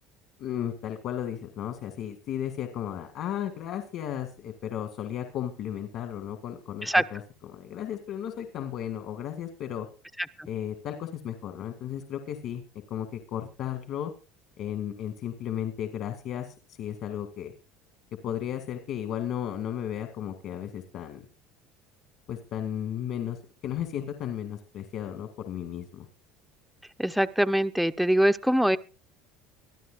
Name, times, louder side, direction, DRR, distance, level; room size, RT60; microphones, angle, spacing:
voice 1, 0.4-9.9 10.5-12.6 12.9-14.1 14.6-17.5 18.2-21.2 22.3-26.1, left 10 dB, 55° left, 7 dB, 2.0 m, -34 dB
voice 2, 27.0-28.8, equal, ahead, 9 dB, 0.6 m, -23 dB
24.0 x 13.5 x 2.4 m, 0.32 s
supercardioid pair, 125°, 0 cm